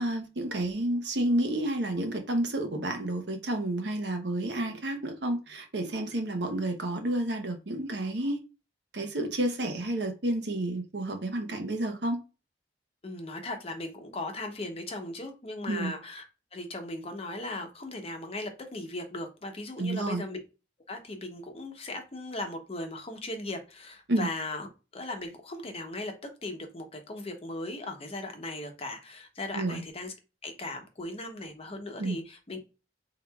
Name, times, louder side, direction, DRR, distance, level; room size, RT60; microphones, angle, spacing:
voice 1, 0.0-8.4 8.9-12.2 15.7-15.9 19.8-20.2 24.1-24.3 29.5-29.8 32.0-32.2, right 1 dB, 75° right, 0.9 m, -30 dB
voice 2, 13.0-16.2 16.5-20.4 20.9-24.7 24.9-26.1 26.4-30.1 30.4-32.7, left 2 dB, 35° left, 0.8 m, -38 dB
4.5 x 3.8 x 2.3 m
head